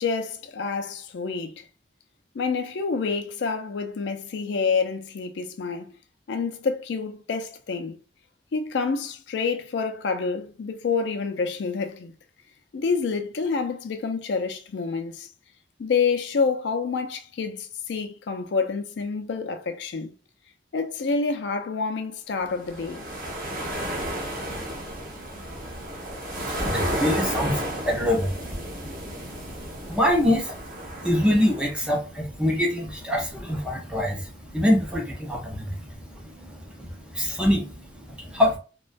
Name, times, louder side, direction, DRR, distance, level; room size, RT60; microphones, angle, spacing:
voice 1, 0.0-1.7 2.3-5.9 6.3-8.0 8.5-12.1 12.7-15.3 15.8-20.1 20.7-23.1, left 5 dB, 80° left, 0.4 m, -28 dB
sound 1, 22.5-31.8, right 1 dB, 50° right, 0.7 m, -32 dB
voice 2, 24.4-38.6, left 1 dB, 5° right, 0.4 m, -26 dB
2.3 x 2.1 x 2.5 m
head